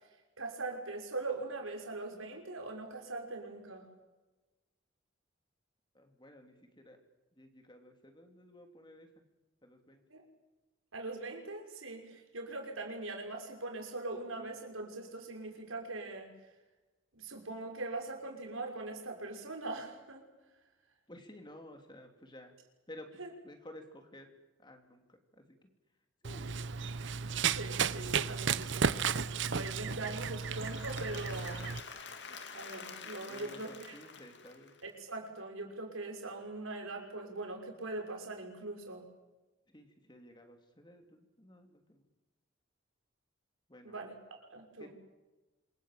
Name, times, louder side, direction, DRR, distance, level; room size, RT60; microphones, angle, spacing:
voice 1, 0.4-3.9 10.1-10.3 10.9-16.3 17.1-20.2 23.2-23.3 27.5-31.7 32.5-33.9 34.8-39.0 43.8-44.9, right 2 dB, 90° right, 2 dB, 5.9 m, -41 dB
voice 2, 5.9-7.0 7.3-9.1 9.6-10.0 21.1-22.5 22.9-23.2 23.4-24.3 24.6-25.7 26.2-26.5 33.3-34.7 39.7-42.1 43.7-44.1 44.8-44.9, left 1 dB, 20° left, 4 dB, 3.1 m, -53 dB
Run, 26.2-31.8, right 6 dB, 65° right, 0.8 m, -34 dB
Applause / Crowd, 30.2-35.2, left 5 dB, 60° left, 2.6 m, -48 dB
27.0 x 22.0 x 7.6 m, 1.1 s
head